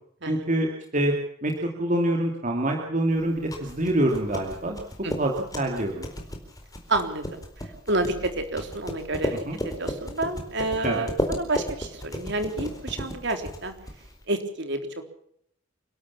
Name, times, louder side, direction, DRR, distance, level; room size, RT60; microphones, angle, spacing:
voice 1, 0.3-0.7 0.9-1.1 1.4-1.5 1.8-4.8 5.2-6.1 9.5-9.6 10.8-11.0, right 1 dB, 40° right, 1 dB, 2.7 m, -25 dB
sound 1, 3.2-14.2, equal, 15° left, 4.4 m, -34 dB
voice 2, 6.9-7.2 7.9-13.7 14.3-14.9, right 2 dB, 55° right, 6 dB, 3.6 m, -29 dB
29.5 x 12.5 x 7.2 m, 0.70 s
head